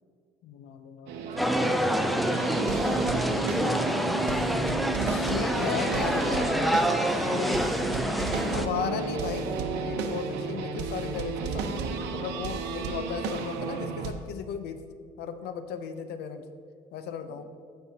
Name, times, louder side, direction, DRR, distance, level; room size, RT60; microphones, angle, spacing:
voice 1, 0.4-1.8 5.0-7.7 8.5-14.8 15.2-16.5 16.9-17.4, left 7 dB, 75° left, 9 dB, 0.7 m, -36 dB
sound 1, 1.1-14.1, right 4 dB, 85° right, 0.8 m, -32 dB
sound 2, 1.4-8.7, equal, ahead, 0.4 m, -27 dB
voice 2, 6.9-8.7 8.9-9.3 17.2-17.4, right 2 dB, 50° right, 2 dB, 1.4 m, -46 dB
14.5 x 5.6 x 2.8 m, 2.3 s
cardioid pair, 110°, 17 cm